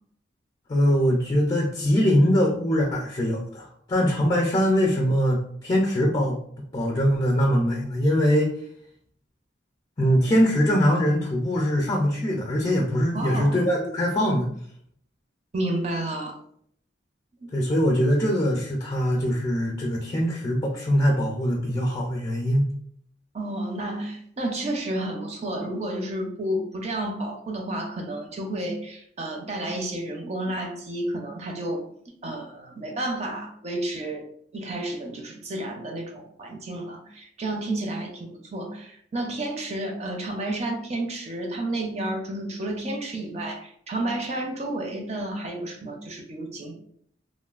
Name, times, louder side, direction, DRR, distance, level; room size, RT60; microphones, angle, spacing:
voice 1, 0.7-6.4 6.7-8.5 10.0-14.5 17.5-22.7, equal, 25° left, -1 dB, 0.4 m, -22 dB
voice 2, 13.1-13.6 15.5-16.4 17.4-17.5 23.3-31.8 32.2-34.3 34.5-46.7, right 1 dB, 35° right, 3 dB, 0.5 m, -31 dB
3.1 x 2.2 x 2.3 m, 0.66 s
head